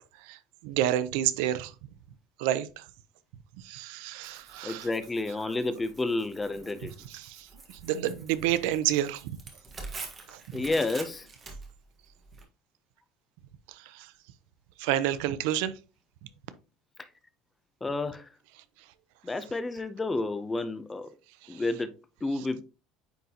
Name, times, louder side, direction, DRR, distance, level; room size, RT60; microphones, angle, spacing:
voice 1, 0.6-1.7 2.4-2.8 3.6-4.9 7.1-7.5 7.8-9.4 10.3-10.4 13.9-14.1 14.8-15.7, right 12 dB, 80° right, 0.6 m, -29 dB
Tearing, 4.2-12.4, right 4 dB, 20° right, 1.4 m, -46 dB
voice 2, 4.6-6.9 10.5-11.3 17.8-18.3 19.2-21.1 21.5-21.9 22.2-22.6, left 2 dB, 10° left, 0.5 m, -30 dB
9.2 x 3.9 x 2.8 m
cardioid pair, 160°, 0 cm